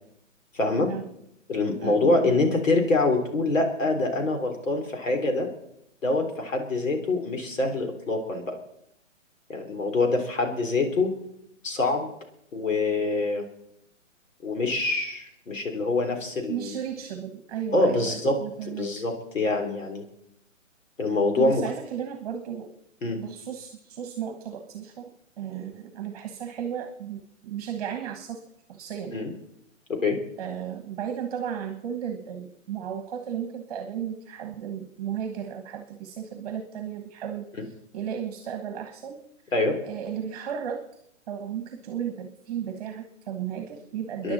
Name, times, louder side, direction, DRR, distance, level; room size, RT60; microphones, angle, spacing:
voice 1, 0.5-0.9 1.5-5.5 6.0-8.6 9.5-11.1 11.6-12.1 12.5-13.5 14.4-16.8 17.7-18.4 18.7-20.1 21.0-21.7 23.0-23.2 29.1-29.3 29.9-30.2 39.5-39.8 44.2-44.3, left 2 dB, 80° left, 4 dB, 3.6 m, -25 dB
voice 2, 1.8-2.3 16.5-18.9 21.4-22.7 23.2-25.1 25.4-28.4 28.7-29.3 30.4-37.5 37.9-39.2 39.8-40.8 41.3-44.3, right 8 dB, 30° right, 7 dB, 1.4 m, -34 dB
28.5 x 10.5 x 4.2 m, 0.78 s
hypercardioid pair, 155°, 38 cm